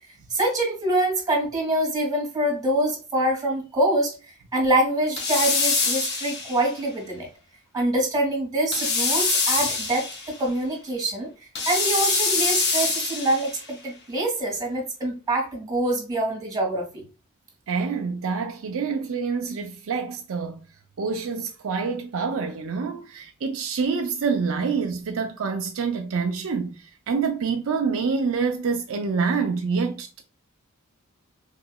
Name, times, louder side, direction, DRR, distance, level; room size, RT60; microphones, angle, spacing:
voice 1, 0.3-4.1 4.5-7.3 7.7-17.0, right 1 dB, 20° right, 1.7 m, -25 dB
sound 1, 5.2-6.7 8.7-10.4 11.5-13.6, left 4 dB, 50° left, 0.8 m, -24 dB
voice 2, 17.7-20.6 21.0-30.2, right 5 dB, 65° right, 0.5 m, -27 dB
3.8 x 2.9 x 2.2 m
head